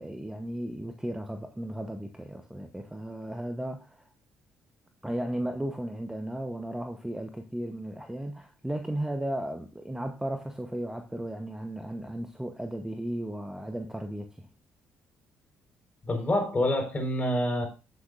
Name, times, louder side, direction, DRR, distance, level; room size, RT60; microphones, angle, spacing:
voice 1, 0.0-4.0 5.0-14.5, right 1 dB, 5° right, 1.0 m, -35 dB
voice 2, 16.0-17.7, left 1 dB, 25° left, 4.6 m, -27 dB
15.5 x 6.5 x 2.5 m
figure-of-eight pair, 45°, 6 cm